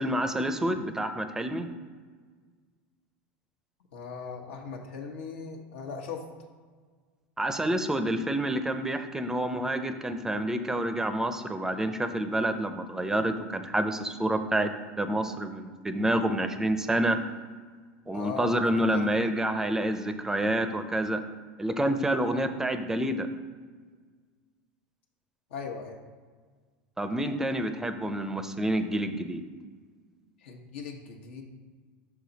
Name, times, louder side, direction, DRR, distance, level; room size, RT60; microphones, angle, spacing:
voice 1, 0.0-1.7 7.4-14.7 15.0-17.2 18.1-21.2 21.6-23.3 27.0-29.4, right 1 dB, 10° right, 9 dB, 0.5 m, -28 dB
voice 2, 3.9-6.2 18.1-18.6 18.9-19.1 25.5-26.0 30.4-31.4, left 5 dB, 85° left, 1 dB, 1.1 m, -38 dB
6.1 x 4.9 x 4.0 m, 1.5 s
supercardioid pair, 120°, 6 cm